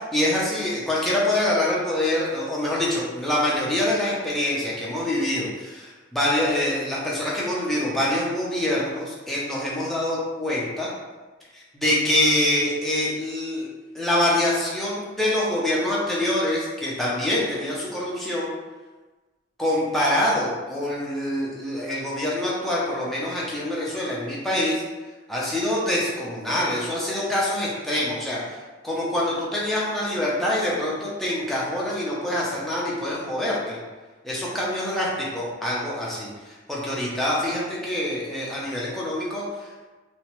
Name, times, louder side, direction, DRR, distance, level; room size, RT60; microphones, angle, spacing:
voice 1, 0.1-10.9 11.5-13.7 13.9-18.5 19.6-24.8 25.3-28.6 28.8-33.8 34.2-39.9, left 1 dB, ahead, -7 dB, 0.6 m, -25 dB
2.9 x 2.2 x 2.9 m, 1.2 s
head